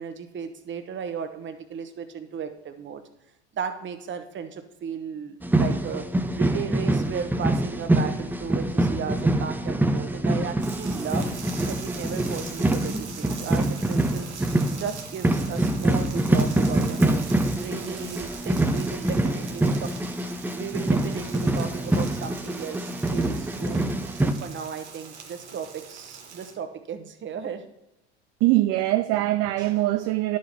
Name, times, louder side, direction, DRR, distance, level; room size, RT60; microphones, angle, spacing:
voice 1, 0.0-3.0 3.5-6.1 6.3-11.3 11.7-14.3 14.8-17.2 17.6-19.8 20.5-23.9 24.2-27.6, right 7 dB, 35° right, 1.0 m, -35 dB
sound 1, 5.4-24.3, right 1 dB, 5° right, 0.6 m, -25 dB
sound 2, 10.6-26.5, right 6 dB, 90° right, 1.4 m, -42 dB
voice 2, 28.4-30.4, right 17 dB, 50° right, 0.4 m, -22 dB
11.0 x 7.6 x 2.8 m
hypercardioid pair, 75°, 33 cm